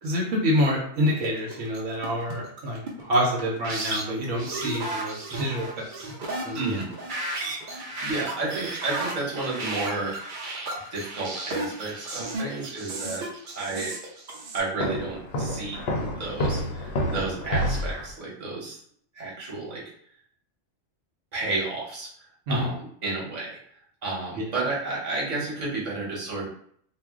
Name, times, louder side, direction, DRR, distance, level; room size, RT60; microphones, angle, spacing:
voice 1, 0.0-6.1 6.4-6.8 22.5-22.7 24.4-24.5, equal, 75° right, -2 dB, 0.9 m, -27 dB
sound 1, 1.1-14.6, right 2 dB, 55° right, 0.6 m, -34 dB
voice 2, 6.5-6.9 7.7-10.1 10.9-13.2 13.5-13.9 14.5-15.8 16.1-18.8 19.2-19.8 21.3-22.1 22.5-23.6 24.0-26.5, right 3 dB, 35° right, -6 dB, 1.0 m, -31 dB
Walk footsteps, 14.8-18.1, equal, 65° left, 0.6 m, -28 dB
2.4 x 2.1 x 3.5 m, 0.63 s
omnidirectional pair, 1.3 m